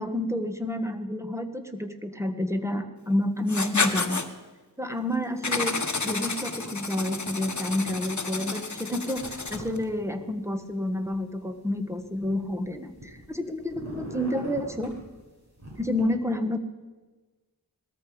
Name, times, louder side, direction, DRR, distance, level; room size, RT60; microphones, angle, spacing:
voice 1, 0.0-4.2 4.8-5.7 6.0-15.0 15.8-16.6, left 1 dB, 5° right, 7 dB, 1.5 m, -29 dB
Writing, 3.5-4.3 5.4-9.8, left 3 dB, 45° left, 1.2 m, -30 dB
sound 1, 9.2-9.8 10.1-11.1 11.7-13.3 13.6-15.0 15.6-16.0, equal, 45° right, 6.8 m, -41 dB
19.0 x 13.5 x 5.1 m, 1.3 s
wide cardioid pair, 40°, 39 cm